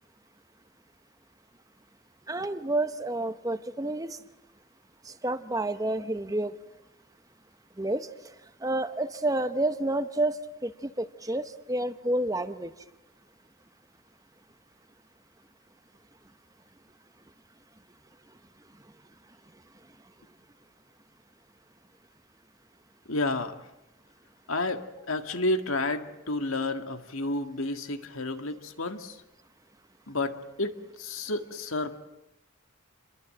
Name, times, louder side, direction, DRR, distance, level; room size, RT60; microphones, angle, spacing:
voice 1, 2.3-4.2 5.2-6.5 7.8-8.1 8.6-10.4 10.6-12.7, right 1 dB, 15° right, 11 dB, 0.9 m, -29 dB
voice 2, 23.1-23.6 24.5-29.2 30.1-32.0, left 2 dB, 80° left, 7 dB, 1.9 m, -31 dB
28.0 x 22.5 x 7.7 m, 0.93 s
head